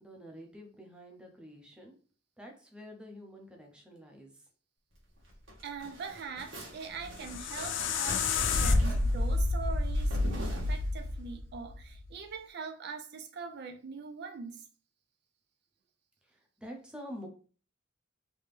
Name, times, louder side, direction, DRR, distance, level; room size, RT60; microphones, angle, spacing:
voice 1, 0.0-2.0 2.4-4.4 16.2-17.3, equal, 5° right, 0.7 m, -48 dB
sound 1, 5.2-11.2, left 1 dB, 75° right, 1.4 m, -44 dB
voice 2, 5.6-14.6, right 5 dB, 55° right, 0.4 m, -42 dB
sound 2, 7.0-12.1, left 3 dB, 65° left, 0.4 m, -29 dB
3.4 x 2.8 x 3.3 m
head